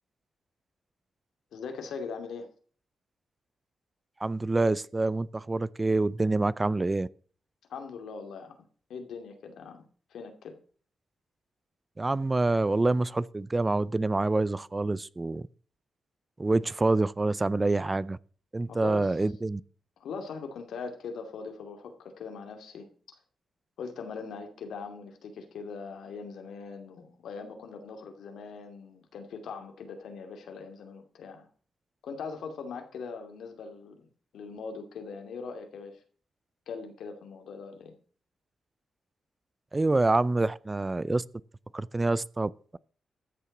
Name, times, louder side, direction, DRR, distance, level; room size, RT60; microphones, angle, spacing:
voice 1, 1.5-2.5 7.7-8.6 8.9-9.8 10.1-10.6 18.7-19.2 20.0-23.2 23.8-31.5 32.0-34.1 34.3-36.0 36.7-38.0, left 5 dB, 85° left, 2.5 m, -41 dB
voice 2, 4.2-7.1 12.0-15.5 16.4-18.2 18.5-19.6 39.7-41.2 41.7-42.8, right 2 dB, 20° right, 0.4 m, -26 dB
13.5 x 7.0 x 6.0 m
cardioid pair, 110°, 0 cm